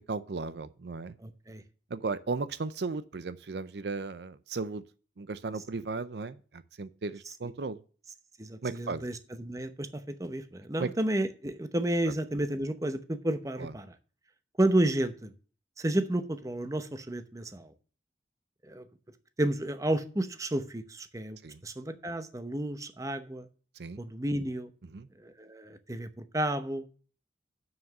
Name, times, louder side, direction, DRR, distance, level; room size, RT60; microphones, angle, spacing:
voice 1, 0.1-1.1 1.9-4.8 5.2-7.8 8.6-9.0 10.8-10.9 13.6-13.7 21.4-21.6 23.8-24.0 24.9-25.1, right 4 dB, 70° right, 0.6 m, -35 dB
voice 2, 1.2-1.6 8.4-13.9 14.6-15.3 15.8-17.7 18.6-18.9 19.4-21.4 21.6-23.5 24.0-24.7 25.2-26.9, right 1 dB, 20° right, 0.8 m, -31 dB
7.2 x 6.4 x 6.4 m
head